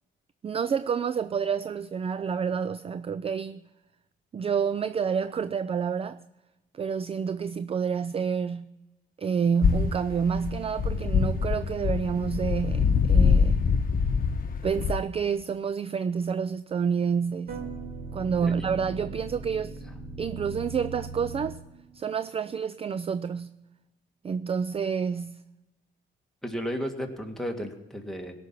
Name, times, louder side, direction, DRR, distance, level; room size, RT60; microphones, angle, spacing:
voice 1, 0.4-3.6 4.3-6.2 6.7-8.7 9.2-13.6 14.6-17.5 18.1-19.8 20.2-21.6 21.9-23.6 24.2-25.4, right 6 dB, 30° right, 0.4 m, -28 dB
sound 1, 9.6-15.0, left 6 dB, 45° left, 1.0 m, -24 dB
sound 2, 10.8-13.9 17.5-22.1, right 2 dB, 55° right, 2.7 m, -39 dB
voice 2, 26.4-28.3, equal, ahead, 2.0 m, -33 dB
17.5 x 6.0 x 8.3 m
cardioid pair, 90°, 20 cm